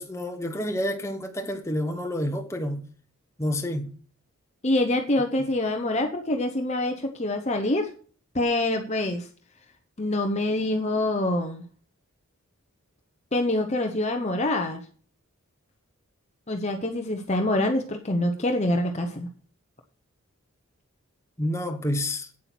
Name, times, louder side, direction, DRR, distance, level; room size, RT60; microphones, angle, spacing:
voice 1, 0.0-2.8 3.4-3.9 21.4-22.3, left 1 dB, 15° left, 1.2 m, -29 dB
voice 2, 4.6-7.9 8.3-9.3 10.0-11.6 13.3-14.8 16.5-19.3, left 1 dB, 30° left, 0.9 m, -25 dB
8.8 x 8.2 x 6.0 m
head